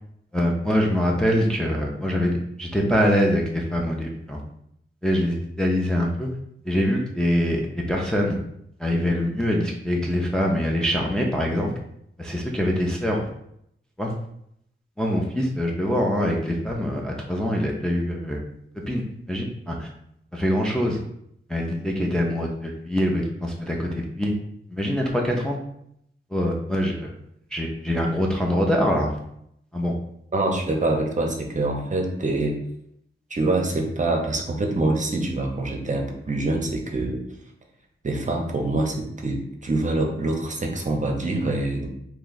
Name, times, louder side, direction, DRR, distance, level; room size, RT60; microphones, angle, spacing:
voice 1, 0.3-4.4 5.0-6.3 6.7-8.4 8.8-11.7 12.2-13.3 14.0-14.1 15.0-18.4 18.9-19.9 20.3-21.0 21.5-24.3 24.7-25.6 26.3-27.1 27.5-29.1 29.7-29.9, equal, 5° left, -1 dB, 0.5 m, -24 dB
voice 2, 30.3-32.6 33.3-37.2 38.0-41.9, right 2 dB, 35° right, 2 dB, 0.7 m, -25 dB
2.9 x 2.3 x 3.9 m, 0.73 s
wide cardioid pair, 85°, 21 cm